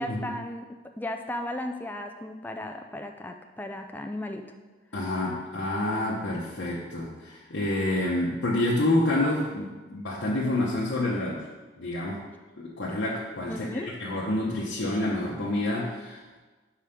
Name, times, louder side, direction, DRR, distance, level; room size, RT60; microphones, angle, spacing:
voice 1, 0.0-4.4 13.5-13.9, left 1 dB, 10° left, 5 dB, 0.3 m, -35 dB
voice 2, 4.9-11.4 11.8-12.2 12.6-16.4, left 1 dB, 75° left, -6 dB, 0.9 m, -28 dB
5.1 x 4.9 x 5.7 m, 1.3 s
head